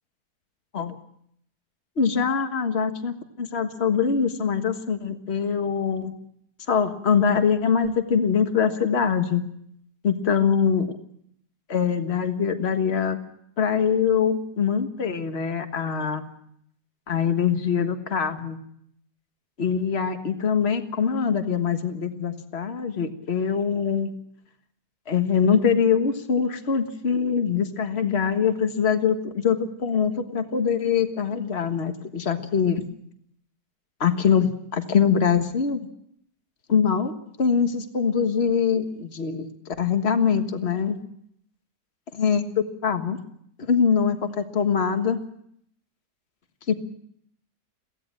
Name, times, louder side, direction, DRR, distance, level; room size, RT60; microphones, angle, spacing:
voice 1, 2.0-6.1 6.7-9.4 10.0-10.9 11.7-13.2 13.6-16.2 17.1-18.6 19.6-24.1 25.1-32.8 34.0-35.8 36.7-37.1 37.4-39.5 39.8-41.0 42.2-42.4 42.8-43.2 43.6-45.2 46.7-46.8, left 6 dB, 45° left, 7 dB, 1.7 m, -23 dB
23.0 x 16.0 x 7.5 m, 0.71 s
omnidirectional pair, 1.6 m